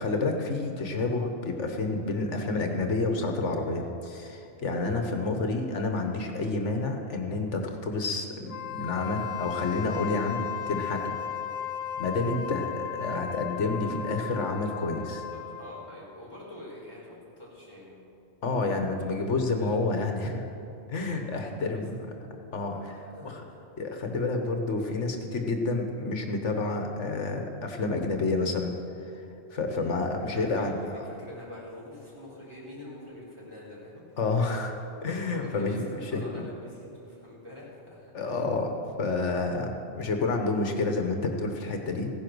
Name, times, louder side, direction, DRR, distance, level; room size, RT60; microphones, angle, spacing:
voice 1, 0.0-11.2 12.0-15.2 18.4-20.4 20.9-22.0 22.5-22.7 23.2-23.4 23.8-28.7 29.5-31.0 34.2-34.7 35.0-36.2 38.1-42.1, left 3 dB, 70° left, 4 dB, 1.5 m, -29 dB
Wind instrument woodwind instrument, 8.4-15.9, left 9 dB, 85° left, 1.2 m, -35 dB
voice 2, 15.3-18.0 19.0-19.7 21.1-22.1 22.7-23.6 29.7-34.2 35.2-38.4, left 1 dB, 25° right, -7 dB, 4.3 m, -46 dB
16.0 x 10.5 x 6.2 m, 2.9 s
omnidirectional pair, 1.3 m